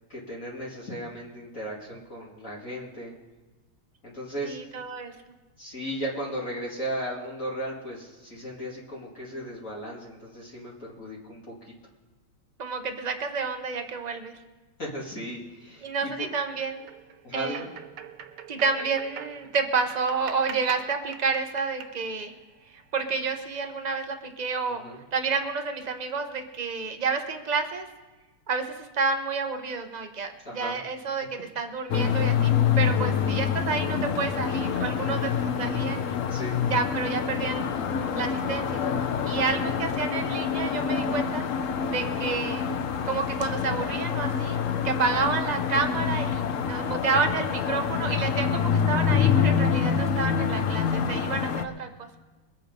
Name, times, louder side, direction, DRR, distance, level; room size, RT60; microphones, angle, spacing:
voice 1, 0.1-3.1 4.0-4.6 5.6-11.5 14.8-16.3 17.2-17.7 24.7-25.0 30.4-30.8 36.3-36.6 39.5-39.7, equal, 40° left, -4 dB, 2.5 m, -36 dB
voice 2, 4.4-5.1 12.6-14.4 15.8-16.9 17.3-17.6 18.5-22.3 22.9-24.8 25.1-27.9 28.5-36.2 36.7-37.8 38.1-38.8 39.2-41.4 41.9-42.7 43.0-44.6 44.8-52.1, right 4 dB, 60° right, 5 dB, 0.4 m, -29 dB
sound 1, 16.8-23.5, right 8 dB, 80° right, 1.7 m, -44 dB
sound 2, 31.9-51.6, left 7 dB, 70° left, 0.7 m, -26 dB
22.5 x 8.3 x 5.2 m, 1.2 s
omnidirectional pair, 2.3 m